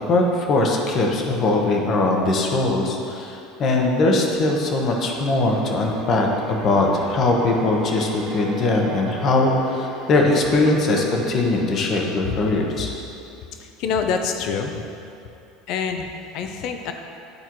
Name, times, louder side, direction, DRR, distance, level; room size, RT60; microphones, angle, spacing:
voice 1, 0.1-12.9, left 2 dB, 40° left, 1 dB, 0.9 m, -21 dB
sound 1, 3.1-13.2, right 1 dB, 40° right, 1.4 m, -37 dB
voice 2, 13.6-14.8 15.7-16.1 16.3-16.9, left 6 dB, 60° left, 5 dB, 0.5 m, -26 dB
10.5 x 4.3 x 3.0 m, 2.6 s
supercardioid pair, 135°, 0 cm